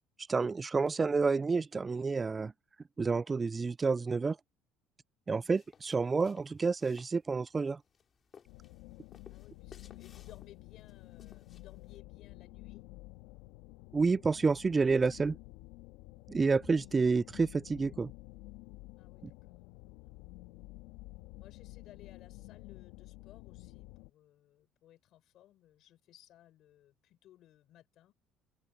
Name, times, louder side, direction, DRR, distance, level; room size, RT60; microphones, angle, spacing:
voice 1, 0.3-2.5 3.0-4.4 5.3-7.8 13.9-15.4 16.3-18.1, right 4 dB, 25° right, 0.3 m, -29 dB
sound 1, 5.4-12.0, left 6 dB, 40° left, 3.9 m, -61 dB
sound 2, 8.5-24.1, left 20 dB, 80° left, 1.7 m, -51 dB
voice 2, 9.3-12.8 19.0-19.6 20.0-20.1 21.4-28.1, left 13 dB, 60° left, 5.6 m, -60 dB
open air
supercardioid pair, 85°, 0 cm